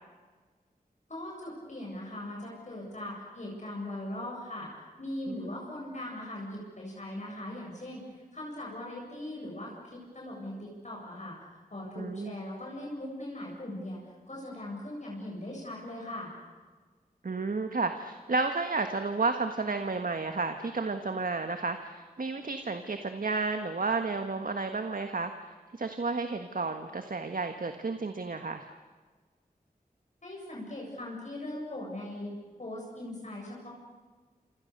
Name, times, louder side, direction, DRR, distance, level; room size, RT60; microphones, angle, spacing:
voice 1, 1.1-4.7 5.0-11.4 11.7-16.3 30.2-32.3 32.6-33.7, left 1 dB, 50° left, -3 dB, 7.7 m, -40 dB
voice 2, 12.0-12.3 17.2-25.3 25.7-28.7, right 3 dB, 65° right, 7 dB, 1.5 m, -32 dB
28.0 x 27.5 x 6.7 m, 1.4 s
wide cardioid pair, 70°, 15 cm